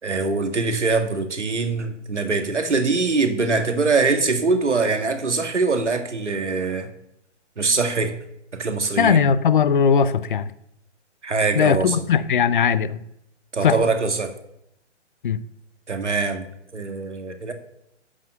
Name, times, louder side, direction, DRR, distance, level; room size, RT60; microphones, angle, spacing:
voice 1, 0.0-6.9 7.6-8.1 8.5-9.3 11.2-12.0 13.5-14.3 15.9-16.5 16.7-17.5, right 4 dB, 70° right, 6 dB, 2.1 m, -23 dB
voice 2, 9.0-10.5 11.5-13.0 13.6-13.8 15.2-15.4, left 7 dB, 45° left, 15 dB, 0.7 m, -19 dB
11.0 x 7.7 x 6.9 m, 0.78 s
figure-of-eight pair, 130°, 36 cm